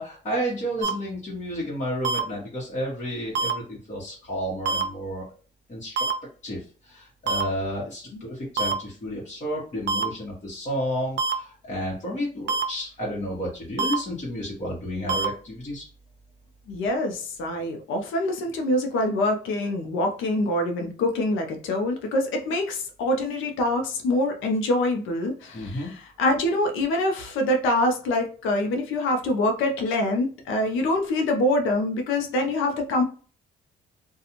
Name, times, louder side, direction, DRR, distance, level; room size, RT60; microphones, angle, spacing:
voice 1, 0.0-5.3 5.7-6.0 6.4-15.9 25.5-25.9, equal, 35° left, -6 dB, 1.1 m, -31 dB
sound 1, 0.8-0.9 2.0-2.2 3.3-3.5 4.7-4.8 6.0-6.1 7.3-7.4 8.6-8.7 9.9-10.0 11.2-11.3 12.5-12.6 13.8-13.9 15.1-15.3, right 4 dB, 65° right, 0.5 m, -24 dB
voice 2, 16.7-33.0, left 1 dB, 85° left, 4 dB, 0.6 m, -25 dB
2.5 x 2.3 x 2.9 m, 0.39 s
cardioid pair, 90°, 20 cm